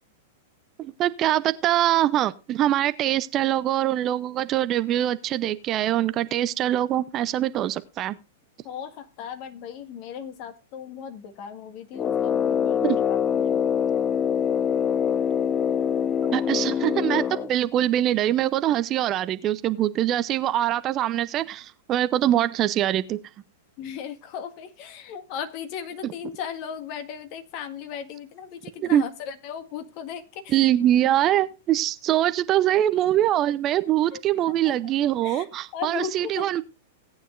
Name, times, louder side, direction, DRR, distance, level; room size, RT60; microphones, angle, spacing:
voice 1, 0.8-8.2 12.8-13.0 16.3-23.2 28.8-29.0 30.5-36.6, right 12 dB, 35° right, 13 dB, 0.7 m, -23 dB
voice 2, 8.6-13.6 23.8-30.7 34.1-34.2 34.6-34.7 35.2-35.5 35.7-36.6, left 8 dB, 45° left, 7 dB, 1.8 m, -36 dB
Brass instrument, 11.9-17.5, left 8 dB, 20° left, 0.5 m, -24 dB
17.5 x 9.1 x 2.6 m, 0.31 s
figure-of-eight pair, 100°, 0 cm